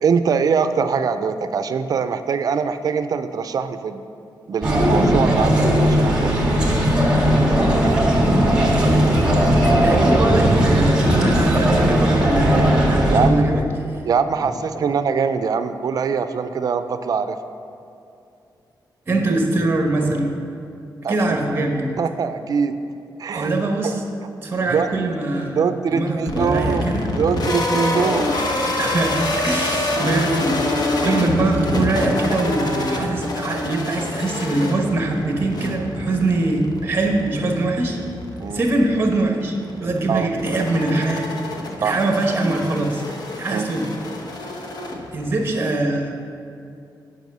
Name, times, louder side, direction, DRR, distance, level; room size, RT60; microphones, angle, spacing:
voice 1, 0.0-4.0 4.5-6.3 13.1-13.5 14.1-17.4 21.0-21.2 22.0-22.8 23.2-23.5 23.8-23.9 24.7-24.9 25.5-26.8 27.2-28.5 31.0-31.3 38.4-38.6 40.1-40.3 41.8-42.0 43.5-43.7, right 6 dB, 55° right, 10 dB, 0.4 m, -22 dB
sound 1, 4.6-13.3, equal, 10° right, 1.5 m, -17 dB
voice 2, 9.6-13.7 13.9-14.1 14.4-14.5 14.7-14.9 19.1-20.3 21.1-21.9 23.3-24.0 24.4-27.1 28.8-30.6 31.0-38.0 38.4-43.0 43.4-43.9 45.1-46.2, right 2 dB, 30° right, 2 dB, 1.1 m, -23 dB
sound 2, 26.3-45.5, left 2 dB, 60° left, 1.0 m, -26 dB
9.2 x 5.4 x 6.8 m, 2.5 s
wide cardioid pair, 170°, 8 cm